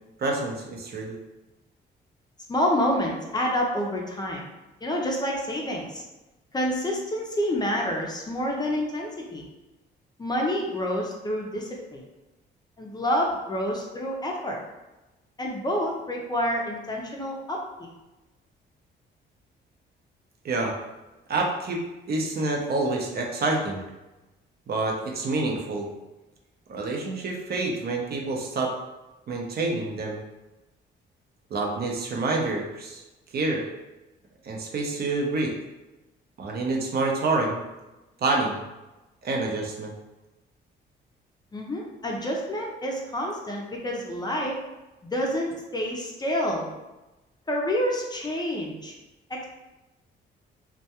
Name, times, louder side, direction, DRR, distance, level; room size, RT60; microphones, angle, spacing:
voice 1, 0.2-1.2 20.4-20.7 21.3-21.8 22.1-23.8 24.7-25.9 26.7-28.7 29.3-30.2 31.5-33.0 33.3-33.6 34.4-35.5 36.4-37.6 38.2-38.6 39.2-39.9, right 2 dB, 55° right, 0 dB, 0.5 m, -27 dB
voice 2, 2.5-4.4 4.8-6.0 6.5-9.4 10.2-12.0 12.8-14.6 15.4-17.9 41.5-44.6 45.1-46.7 47.5-48.9 49.3-49.4, equal, 20° left, -1 dB, 0.5 m, -28 dB
2.2 x 2.2 x 2.8 m, 1.0 s
cardioid pair, 90°, 20 cm